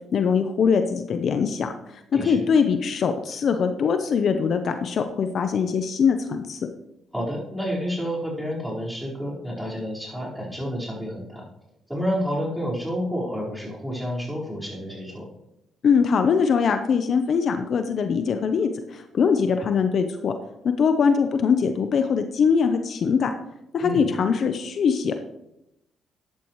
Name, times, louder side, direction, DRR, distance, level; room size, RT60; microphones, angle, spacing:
voice 1, 0.1-1.7 2.2-6.7 15.8-20.3 20.6-23.3 23.7-25.2, left 6 dB, 60° left, 7 dB, 0.8 m, -22 dB
voice 2, 2.1-2.4 7.1-11.4 11.9-15.3 23.8-24.0, equal, 5° right, -5 dB, 4.7 m, -29 dB
13.0 x 10.5 x 3.2 m, 0.86 s
cardioid pair, 90°, 0 cm